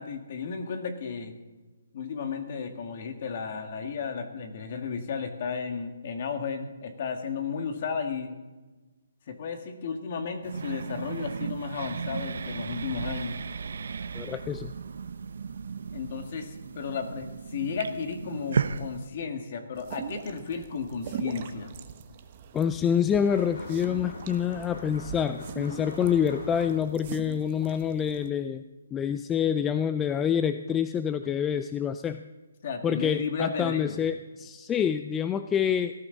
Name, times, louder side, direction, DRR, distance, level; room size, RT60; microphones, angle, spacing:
voice 1, 0.0-1.3 1.9-8.4 9.3-13.4 15.9-21.7 32.6-34.0, left 5 dB, 40° left, 6 dB, 1.9 m, -34 dB
sound 1, 10.4-19.1, right 5 dB, 65° right, 0.8 m, -35 dB
voice 2, 14.1-14.7 22.5-28.6 28.9-32.3 32.8-35.9, left 8 dB, 10° left, 10 dB, 0.3 m, -27 dB
sound 2, 19.7-28.3, right 8 dB, 35° right, 1.1 m, -42 dB
sound 3, 23.3-27.1, left 1 dB, 70° left, 5.1 m, -43 dB
18.0 x 14.5 x 4.0 m, 1.2 s
hypercardioid pair, 165°, 0 cm